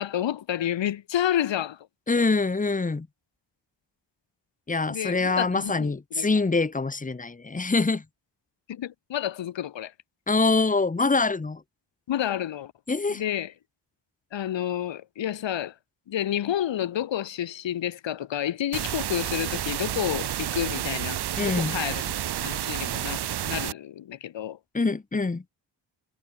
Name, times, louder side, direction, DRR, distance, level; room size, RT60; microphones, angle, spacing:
voice 1, 0.0-1.8 4.9-6.3 8.7-9.9 12.1-12.7 13.1-13.5 14.3-15.7 16.1-22.1 22.4-24.6, left 11 dB, 85° left, 2.8 m, -30 dB
voice 2, 2.1-3.1 4.7-8.0 10.3-11.6 12.9-13.2 21.4-21.8 24.7-25.4, left 3 dB, 20° left, 2.5 m, -24 dB
sound 1, 18.7-23.7, right 11 dB, 60° right, 1.1 m, -30 dB
wide cardioid pair, 160°, 43 cm